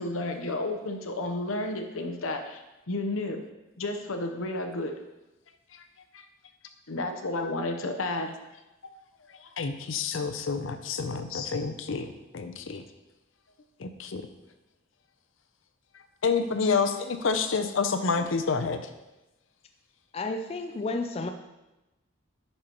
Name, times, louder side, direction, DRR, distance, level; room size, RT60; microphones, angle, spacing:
voice 1, 0.0-3.4 3.8-4.9 6.9-8.3 9.4-9.5 11.3-11.5, left 2 dB, 90° left, 5 dB, 0.8 m, -32 dB
voice 2, 9.6-12.8 13.8-14.2 16.2-18.8, left 5 dB, 70° left, 9 dB, 0.6 m, -28 dB
voice 3, 20.1-21.3, left 2 dB, 30° left, 5 dB, 0.4 m, -32 dB
9.8 x 5.5 x 3.0 m, 1.0 s
head